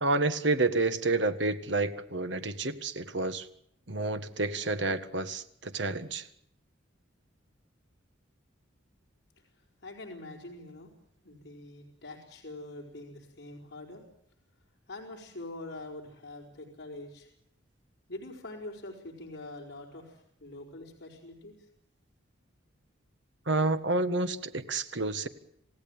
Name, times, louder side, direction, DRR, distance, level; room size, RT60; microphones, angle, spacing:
voice 1, 0.0-3.5 3.9-6.3 23.5-25.3, right 2 dB, 60° right, 10 dB, 1.7 m, -29 dB
voice 2, 9.8-10.9 11.2-14.0 14.9-17.3 18.1-21.5, left 2 dB, 55° left, -1 dB, 4.8 m, -44 dB
28.0 x 16.5 x 9.0 m, 0.71 s
head